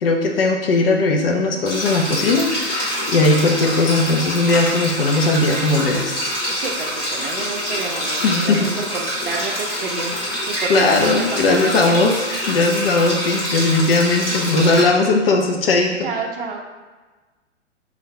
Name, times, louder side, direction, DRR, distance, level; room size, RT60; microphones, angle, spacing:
voice 1, 0.0-6.3 8.2-8.7 10.7-12.2 12.5-16.1, left 3 dB, 50° left, 2 dB, 0.7 m, -18 dB
sound 1, 1.7-14.8, equal, 20° left, 1.5 m, -25 dB
voice 2, 6.6-12.0 16.0-16.6, right 4 dB, 45° right, 1 dB, 0.6 m, -29 dB
5.3 x 2.5 x 3.2 m, 1.3 s
figure-of-eight pair, 110°, 37 cm